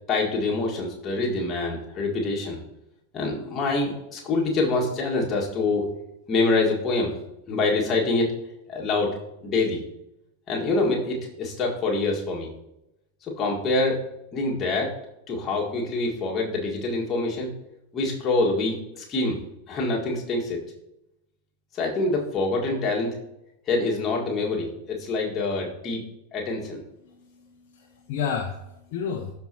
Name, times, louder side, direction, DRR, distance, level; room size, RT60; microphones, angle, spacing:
voice 1, 0.1-2.6 3.1-5.9 6.3-7.1 7.5-8.3 8.7-9.1 9.4-9.8 10.5-12.5 13.2-14.0 14.3-14.9 15.3-17.5 17.9-19.4 19.7-20.6 21.7-23.2 23.7-26.0 26.3-26.8, left 3 dB, 25° left, -2 dB, 1.8 m, -25 dB
voice 2, 27.0-29.3, left 7 dB, 45° left, 1 dB, 0.9 m, -32 dB
12.5 x 4.6 x 2.9 m, 0.86 s
figure-of-eight pair, 90°, 0 cm